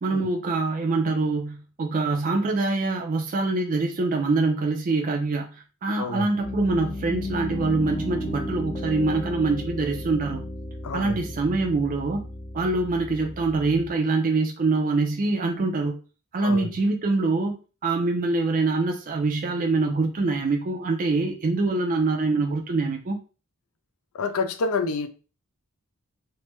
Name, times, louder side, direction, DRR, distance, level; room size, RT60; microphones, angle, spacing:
voice 1, 0.0-10.4 10.9-12.2 12.5-16.0 16.3-17.6 17.8-23.2, right 3 dB, 40° right, 0.4 m, -24 dB
voice 2, 6.0-6.3 10.8-11.2 16.4-16.7 24.1-25.1, left 4 dB, 75° left, 0.4 m, -28 dB
Piano, 6.4-13.9, left 1 dB, 20° left, 0.5 m, -34 dB
3.2 x 2.1 x 3.0 m
head